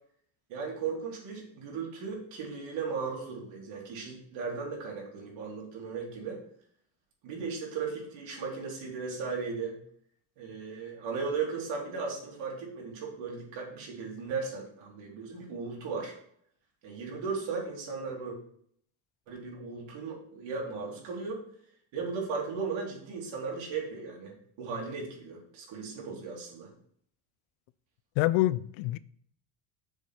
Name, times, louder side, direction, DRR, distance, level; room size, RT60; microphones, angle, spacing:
voice 1, 0.5-6.4 7.2-9.8 10.4-16.1 16.8-18.4 19.3-21.4 21.9-26.7, right 5 dB, 70° right, 3.2 m, -36 dB
voice 2, 28.2-29.0, left 17 dB, 85° left, 0.5 m, -26 dB
6.9 x 4.3 x 6.2 m
cardioid pair, 135°, 46 cm